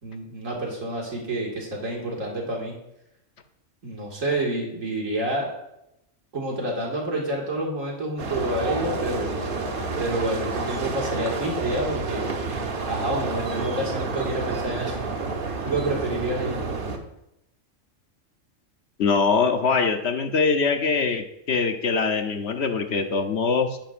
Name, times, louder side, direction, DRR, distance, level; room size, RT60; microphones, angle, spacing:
voice 1, 0.0-2.7 3.8-5.5 6.3-9.3 10.0-12.3 12.9-15.0 15.6-16.6, right 1 dB, 85° right, -2 dB, 2.5 m, -28 dB
sound 1, 8.2-17.0, right 3 dB, 45° right, 1.0 m, -29 dB
voice 2, 19.0-23.8, left 4 dB, 60° left, 6 dB, 1.0 m, -23 dB
10.5 x 10.5 x 2.5 m, 0.84 s
omnidirectional pair, 1.3 m